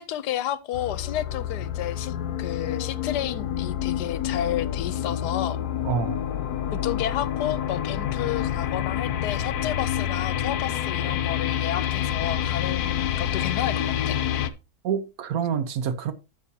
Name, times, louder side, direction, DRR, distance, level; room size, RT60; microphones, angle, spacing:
voice 1, 0.0-5.6 6.7-14.2, left 11 dB, 85° left, 1.3 m, -31 dB
sound 1, 0.7-14.5, left 10 dB, 70° left, 1.2 m, -28 dB
voice 2, 5.8-6.3 14.8-16.1, right 7 dB, 65° right, 1.3 m, -27 dB
11.5 x 7.2 x 2.7 m
omnidirectional pair, 1.7 m